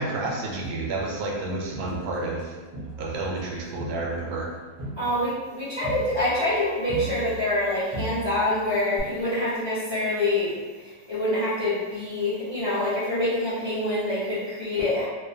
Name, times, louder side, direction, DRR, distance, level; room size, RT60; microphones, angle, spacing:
voice 1, 0.0-2.5 3.0-4.5, right 2 dB, 85° right, -2 dB, 1.1 m, -30 dB
Crowd, 0.6-2.4 2.7-7.6 7.9-8.6 9.0-9.1, right 3 dB, 50° right, 0.4 m, -38 dB
voice 2, 5.0-10.5 10.8-15.1, left 1 dB, 45° left, -11 dB, 0.4 m, -26 dB
Piano, 6.2-9.2, left 2 dB, 75° left, 1.0 m, -39 dB
2.5 x 2.1 x 2.6 m, 1.4 s
omnidirectional pair, 1.6 m